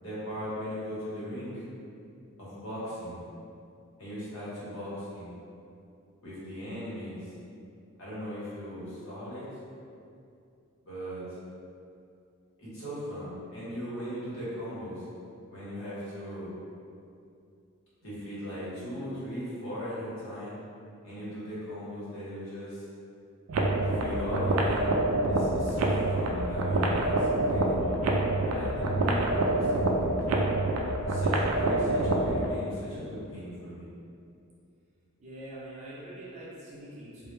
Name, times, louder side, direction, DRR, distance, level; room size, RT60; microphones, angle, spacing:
voice 1, 0.0-1.6 2.4-3.2 4.0-5.3 6.2-7.3 8.0-9.5 10.9-11.3 12.6-15.0 15.5-16.5 18.0-20.6 21.0-22.8 23.8-28.0 28.4-30.1 31.1-33.9, equal, 65° left, -10 dB, 1.0 m, -38 dB
sound 1, 23.5-32.5, right 2 dB, 80° right, 0.3 m, -26 dB
voice 2, 35.2-37.3, right 1 dB, 35° right, -7 dB, 0.6 m, -44 dB
2.1 x 2.1 x 3.0 m, 2.5 s
head